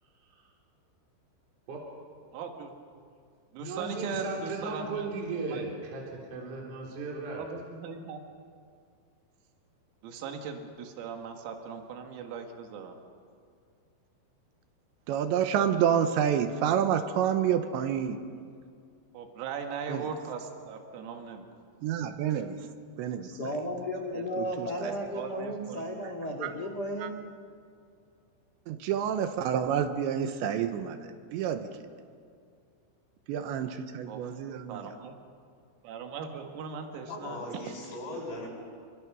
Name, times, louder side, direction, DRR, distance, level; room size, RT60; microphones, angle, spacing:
voice 1, 2.3-3.0 3.5-5.1 5.5-5.7 7.3-8.2 10.0-13.0 19.1-21.5 22.3-22.4 24.1-24.2 24.8-26.0 34.1-34.3 34.7-35.1 35.8-37.5, right 5 dB, 90° right, 4 dB, 4.5 m, -39 dB
voice 2, 3.6-7.4, right 3 dB, 40° right, -1 dB, 4.6 m, -36 dB
voice 3, 15.1-18.2 19.9-20.1 21.8-22.6 23.0-23.3 24.4-24.7 26.4-26.5 27.0-27.1 28.7-31.6 33.3-34.8, right 9 dB, 75° right, 8 dB, 3.0 m, -28 dB
voice 4, 23.2-27.1, equal, 45° left, 3 dB, 1.2 m, -34 dB
voice 5, 37.1-38.5, left 2 dB, 90° left, -4 dB, 10.5 m, -38 dB
28.5 x 25.0 x 6.2 m, 2.3 s
omnidirectional pair, 6.0 m